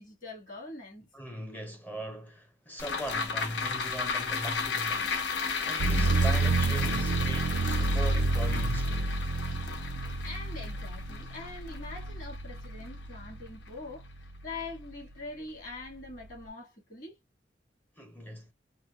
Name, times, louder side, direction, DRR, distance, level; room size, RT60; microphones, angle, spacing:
voice 1, 0.0-1.1 10.2-17.2, left 3 dB, 45° left, 1.6 m, -43 dB
voice 2, 1.1-5.2 5.6-9.1 18.0-18.5, equal, 10° left, 0.5 m, -40 dB
sound 1, 2.8-13.3 13.7-13.8, left 5 dB, 75° left, 0.6 m, -34 dB
sound 2, 5.8-13.6 14.1-14.9, right 3 dB, 70° right, 0.3 m, -29 dB
4.4 x 2.0 x 2.3 m
head